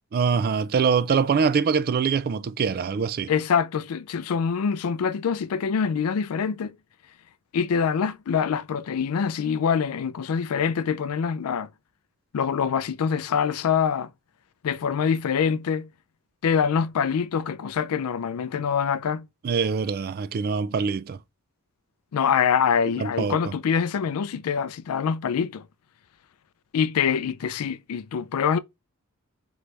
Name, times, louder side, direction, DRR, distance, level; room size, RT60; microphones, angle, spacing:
voice 1, 0.1-3.3 19.4-21.2 23.0-23.5, right 5 dB, 45° right, 0.3 m, -24 dB
voice 2, 3.3-6.7 7.5-11.7 12.3-14.1 14.6-15.9 16.4-19.3 22.1-25.6 26.7-28.6, left 6 dB, 75° left, 0.4 m, -25 dB
3.9 x 3.2 x 3.3 m
head